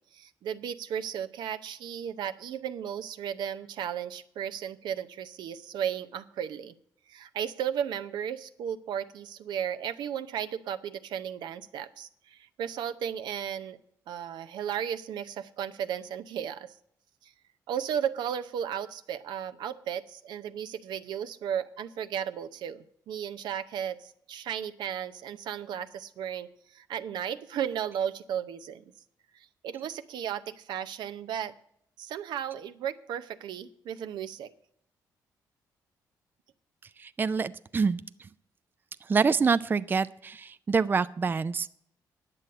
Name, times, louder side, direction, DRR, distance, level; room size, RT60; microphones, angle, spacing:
voice 1, 0.1-6.7 7.1-13.8 14.1-16.7 17.2-17.3 17.7-28.8 29.6-31.5 32.0-34.5, right 9 dB, 80° right, 10 dB, 0.7 m, -35 dB
voice 2, 37.0-38.0 39.1-41.7, right 5 dB, 25° right, 14 dB, 0.4 m, -26 dB
10.0 x 7.8 x 7.6 m, 0.71 s
cardioid pair, 90°, 7 cm